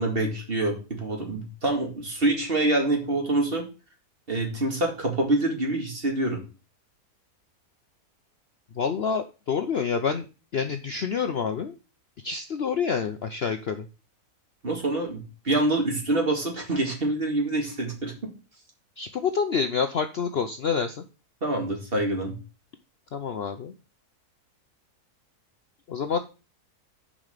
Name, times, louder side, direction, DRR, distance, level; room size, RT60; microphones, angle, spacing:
voice 1, 0.0-3.6 4.3-6.4 14.6-18.1 21.4-22.3, right 2 dB, 35° right, 1 dB, 2.4 m, -26 dB
voice 2, 8.7-10.2 10.5-11.7 12.2-13.9 19.0-21.0 23.1-23.7 25.9-26.2, left 6 dB, 55° left, 7 dB, 0.8 m, -27 dB
7.2 x 5.2 x 6.6 m, 0.32 s
omnidirectional pair, 1.6 m